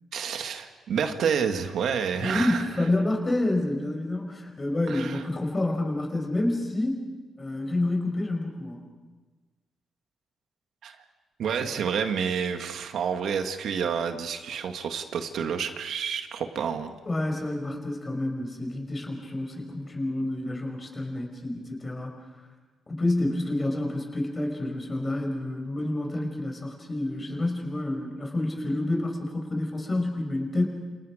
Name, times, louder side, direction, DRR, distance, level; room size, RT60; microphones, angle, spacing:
voice 1, 0.1-2.7 4.9-5.2 10.8-11.0 11.4-17.0, right 7 dB, 70° right, 6 dB, 2.0 m, -29 dB
voice 2, 2.2-7.1 7.4-8.8 17.1-22.1 22.9-30.6, left 1 dB, 25° left, 2 dB, 6.1 m, -28 dB
28.5 x 28.0 x 5.1 m, 1.3 s
cardioid pair, 110°, 0 cm